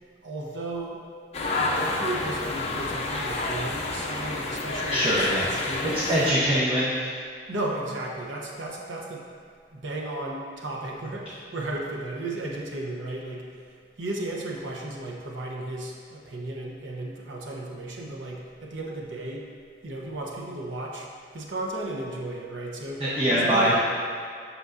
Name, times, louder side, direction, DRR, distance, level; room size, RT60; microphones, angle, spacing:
voice 1, 0.2-1.1 1.5-5.1 5.4-6.1 7.5-9.3 9.7-13.5 14.0-19.5 19.8-21.1 21.3-23.8, right 2 dB, 90° right, -1 dB, 0.8 m, -34 dB
sound 1, 1.3-6.3, left 2 dB, 35° left, 0.6 m, -29 dB
voice 2, 4.9-5.5 6.1-7.1 23.0-23.8, equal, 30° right, -8 dB, 0.8 m, -23 dB
8.0 x 6.1 x 2.5 m, 2.2 s
head